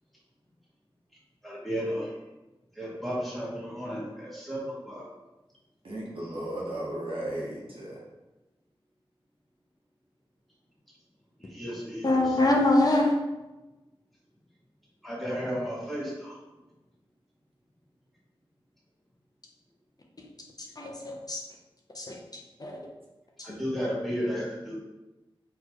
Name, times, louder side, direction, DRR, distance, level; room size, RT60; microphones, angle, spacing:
voice 1, 1.4-2.1 2.8-5.0 11.5-12.2 15.0-16.4 23.4-24.7, equal, ahead, -7 dB, 1.4 m, -33 dB
voice 2, 5.8-8.0, right 1 dB, 70° right, -4 dB, 1.0 m, -35 dB
voice 3, 12.0-13.1 20.8-21.4 21.9-22.2 22.6-22.8, left 2 dB, 40° left, 0 dB, 0.6 m, -24 dB
4.1 x 3.0 x 2.9 m, 1.1 s
wide cardioid pair, 75°, 10 cm